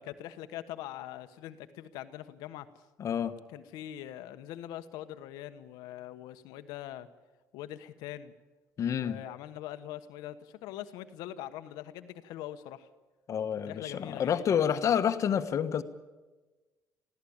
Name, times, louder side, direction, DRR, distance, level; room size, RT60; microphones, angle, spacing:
voice 1, 0.0-2.7 3.5-7.1 7.5-8.3 8.9-12.9 13.7-14.7, left 12 dB, 85° left, 11 dB, 1.2 m, -43 dB
voice 2, 3.0-3.3 8.8-9.2 13.3-15.8, left 8 dB, 50° left, 9 dB, 1.4 m, -28 dB
22.0 x 15.5 x 8.8 m, 1.2 s
supercardioid pair, 85°, 7 cm